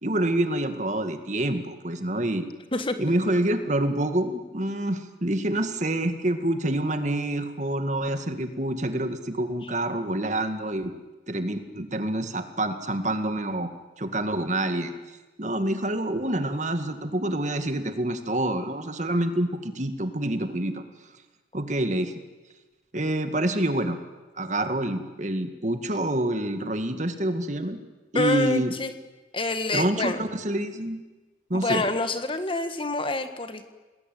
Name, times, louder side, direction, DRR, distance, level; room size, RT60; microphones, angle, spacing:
voice 1, 0.0-2.5 3.0-10.9 11.3-13.7 14.0-14.9 15.4-20.8 21.5-22.1 22.9-24.0 24.4-27.8 28.1-28.7 29.7-31.0 31.5-31.8, right 1 dB, 40° right, 8 dB, 2.1 m, -27 dB
voice 2, 28.1-28.9 29.3-30.2 31.5-33.7, left 2 dB, 30° left, 9 dB, 1.6 m, -27 dB
29.0 x 20.5 x 9.3 m, 1.2 s
head